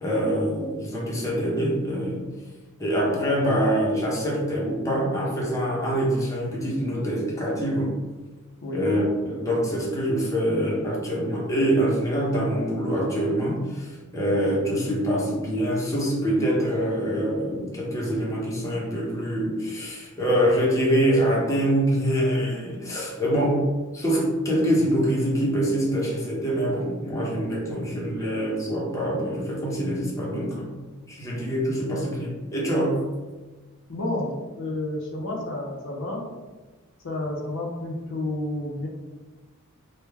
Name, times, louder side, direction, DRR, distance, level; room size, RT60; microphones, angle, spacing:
voice 1, 0.0-2.2 2.8-7.9 8.7-23.6 23.9-30.8 31.1-33.0, equal, 15° left, -4 dB, 0.7 m, -25 dB
voice 2, 23.2-23.6 33.9-36.2 37.0-38.9, left 1 dB, 60° left, -1 dB, 0.6 m, -30 dB
3.2 x 2.2 x 3.3 m, 1.2 s
head